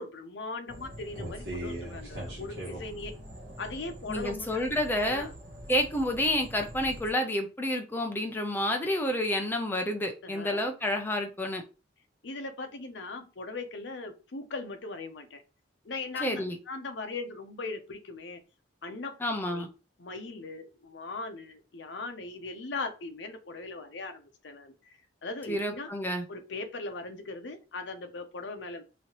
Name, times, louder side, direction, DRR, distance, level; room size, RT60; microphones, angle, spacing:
voice 1, 0.0-3.1 3.6-4.6 5.1-5.3 10.2-10.7 12.2-15.4 15.8-18.4 18.8-19.1 19.5-19.7 20.0-25.9 26.3-28.8, left 3 dB, 80° left, 7 dB, 0.6 m, -39 dB
sound 1, 0.7-7.1, equal, 60° right, 1.3 m, -42 dB
voice 2, 4.1-5.3 5.7-11.6 16.2-16.6 19.2-19.7 25.5-26.2, left 1 dB, 10° left, 3 dB, 0.5 m, -29 dB
3.1 x 2.8 x 2.9 m, 0.32 s
head